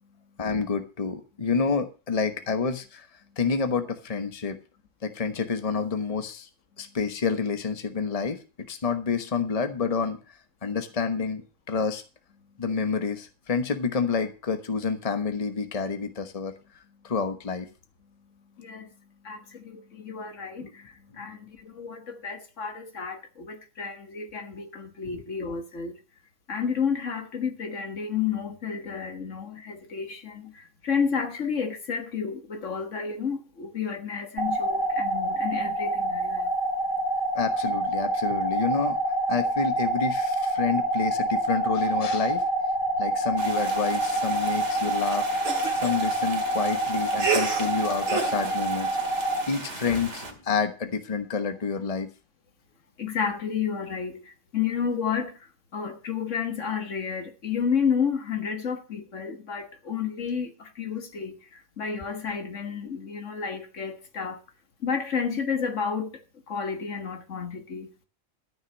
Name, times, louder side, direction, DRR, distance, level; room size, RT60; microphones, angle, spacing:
voice 1, 0.4-3.1 3.4-4.6 5.0-6.5 6.8-8.4 8.7-10.2 10.6-11.4 11.7-12.0 12.6-16.5 17.0-17.7 20.6-20.7 25.1-25.2 37.3-39.0 39.3-42.4 43.0-45.3 45.8-49.0 49.4-52.1, left 5 dB, 30° left, 1.2 m, -28 dB
voice 2, 18.6-18.9 19.2-26.0 26.5-36.5 53.0-55.5 55.7-64.4 64.8-67.9, left 6 dB, 65° left, 1.8 m, -31 dB
sound 1, 34.4-49.4, right 1 dB, 90° right, 2.2 m, -27 dB
sound 2, 43.4-50.3, right 4 dB, 60° right, 2.5 m, -33 dB
13.0 x 6.2 x 7.3 m
omnidirectional pair, 1.4 m